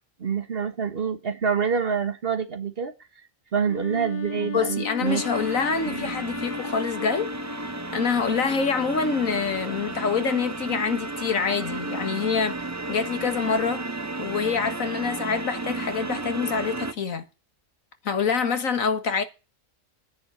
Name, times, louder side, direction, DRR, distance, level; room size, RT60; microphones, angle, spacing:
voice 1, 0.2-2.9 3.5-5.2 5.8-6.1, right 6 dB, 45° right, 1.5 m, -26 dB
Wind instrument woodwind instrument, 3.6-8.3, left 6 dB, 50° left, 1.3 m, -37 dB
voice 2, 4.4-7.3 7.9-12.6 12.9-13.9 14.2-17.3 18.0-19.2, left 5 dB, 80° left, 2.1 m, -26 dB
sound 1, 5.0-16.9, right 2 dB, 25° right, 0.4 m, -33 dB
10.0 x 10.0 x 8.4 m
omnidirectional pair, 1.4 m